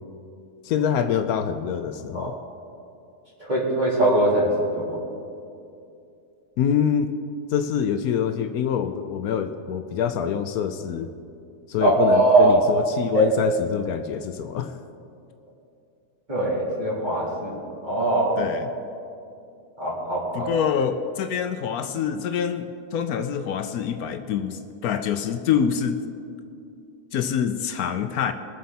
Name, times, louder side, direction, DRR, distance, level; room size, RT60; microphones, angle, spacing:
voice 1, 0.6-2.3 6.6-7.1 7.5-11.1 11.7-14.7 18.4-18.7 20.3-26.0 27.1-28.3, left 8 dB, 75° left, 8 dB, 1.1 m, -25 dB
voice 2, 3.4-5.0 11.8-12.6 13.1-13.2 16.3-17.6 17.8-18.4 19.8-20.5, right 1 dB, 30° right, -7 dB, 3.5 m, -21 dB
21.5 x 7.7 x 4.1 m, 2.6 s
omnidirectional pair, 1.6 m